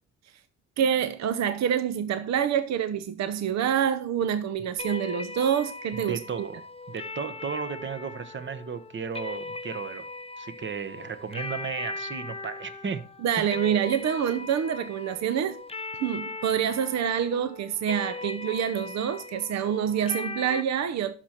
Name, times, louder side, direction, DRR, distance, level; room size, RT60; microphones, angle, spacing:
voice 1, 0.8-6.5 13.2-15.6 16.0-21.1, right 8 dB, 60° right, 0.8 m, -27 dB
sound 1, 4.8-20.6, left 3 dB, 20° left, 0.7 m, -39 dB
voice 2, 6.1-10.0 10.4-13.0 13.4-13.6, right 6 dB, 40° right, 1.1 m, -34 dB
11.5 x 6.0 x 4.4 m
cardioid pair, 90°, 30 cm